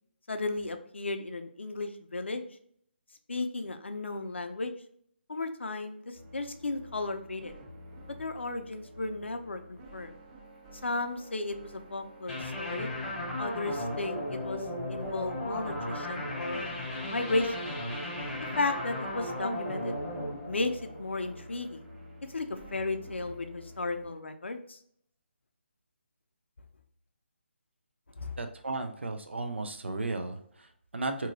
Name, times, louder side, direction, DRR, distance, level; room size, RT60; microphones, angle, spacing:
voice 1, 0.3-2.5 3.3-4.8 5.3-6.0 6.3-7.5 8.2-10.2 10.8-12.9 13.4-16.7 17.1-17.7 18.6-20.0 20.5-21.8 22.3-24.8 28.2-28.3, left 3 dB, 75° left, 7 dB, 0.5 m, -34 dB
sound 1, 6.1-24.1, equal, 35° right, 1.1 m, -50 dB
sound 2, 12.3-21.6, left 1 dB, 10° left, 0.8 m, -36 dB
voice 2, 28.4-31.3, right 2 dB, 75° right, 6 dB, 0.5 m, -35 dB
2.8 x 2.6 x 2.6 m, 0.65 s
figure-of-eight pair, 150°, 6 cm